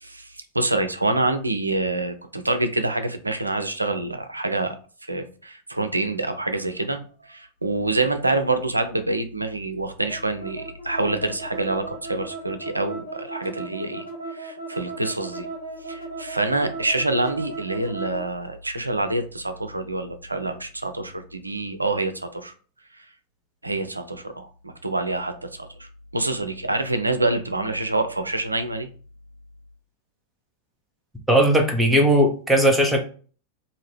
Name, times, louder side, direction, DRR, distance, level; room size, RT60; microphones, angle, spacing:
voice 1, 0.0-14.0 14.3-15.5 15.9-22.5 23.0-23.1 23.6-25.9 26.1-28.9, right 2 dB, 85° right, 8 dB, 0.4 m, -26 dB
sound 1, 10.1-18.3, right 3 dB, 85° left, 1.1 m, -36 dB
voice 2, 31.3-33.0, right 1 dB, 5° right, 2 dB, 0.6 m, -18 dB
2.8 x 2.5 x 3.2 m, 0.40 s
figure-of-eight pair, 90°, 0 cm